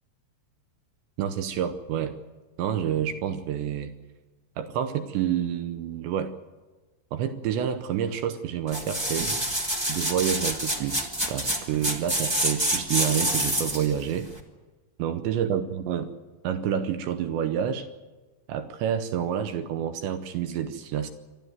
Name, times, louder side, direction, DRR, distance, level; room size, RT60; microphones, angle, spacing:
voice 1, 1.2-2.1 2.6-3.9 4.6-6.3 7.1-9.3 9.9-14.3 15.0-16.1 16.4-17.9 18.5-21.1, right 9 dB, 75° right, 9 dB, 3.0 m, -28 dB
sound 1, 8.7-13.9 14.4-14.5, right 1 dB, 20° right, 0.6 m, -27 dB
27.5 x 12.5 x 9.3 m, 1.3 s
omnidirectional pair, 5.4 m